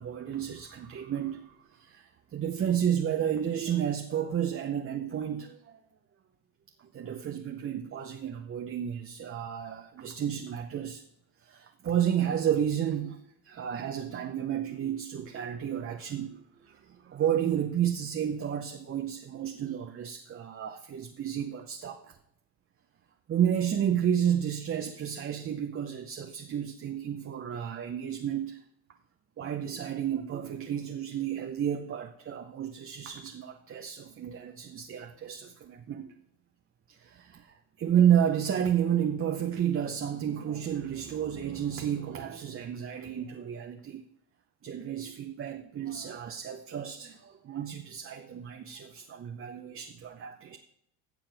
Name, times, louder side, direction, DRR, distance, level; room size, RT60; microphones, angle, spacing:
voice 1, 0.0-5.8 6.8-11.0 11.4-22.2 23.3-28.6 29.4-36.1 36.9-44.0 44.6-50.6, right 9 dB, 25° right, 0.8 m, -31 dB
15.0 x 7.5 x 3.4 m
supercardioid pair, 100°, 49 cm